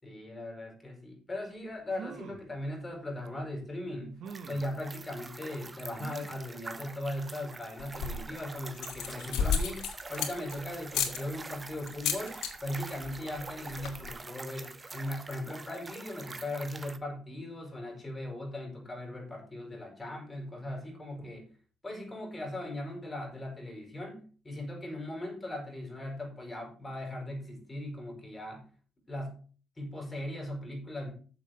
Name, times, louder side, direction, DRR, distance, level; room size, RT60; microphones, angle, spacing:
voice 1, 0.0-21.5 21.8-28.7 29.1-29.4 29.8-31.1, left 1 dB, 20° left, 1 dB, 5.6 m, -39 dB
sound 1, 1.5-1.6 1.9-2.5 3.3-3.4 4.2-4.7 6.0-6.5 7.0-7.1 7.4-7.5, right 7 dB, 75° right, 1.2 m, -45 dB
sound 2, 4.3-17.0, right 3 dB, 20° right, 1.0 m, -45 dB
sound 3, 7.8-8.3 8.7-10.5 10.9-11.2 11.9-12.5 12.8-13.1 13.4-13.5 13.7-14.1, left 7 dB, 90° left, 2.5 m, -31 dB
7.7 x 7.5 x 6.7 m, 0.40 s
cardioid pair, 110°, 0 cm